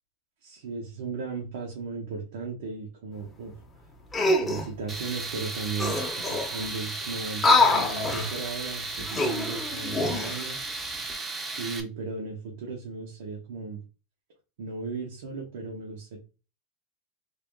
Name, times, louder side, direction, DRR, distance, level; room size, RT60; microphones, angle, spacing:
voice 1, 0.4-3.5 4.4-10.6 11.6-13.8 14.6-16.2, right 4 dB, 80° right, 0 dB, 1.0 m, -36 dB
sound 1, 4.1-4.7 5.5-5.6 5.8-6.7 7.3-8.4 9.0-10.4 10.9-11.1, left 2 dB, 10° left, 0.9 m, -25 dB
Tools, 4.9-11.8, right 3 dB, 20° right, 0.7 m, -35 dB
3.5 x 2.5 x 3.5 m, 0.31 s
supercardioid pair, 140°, 0 cm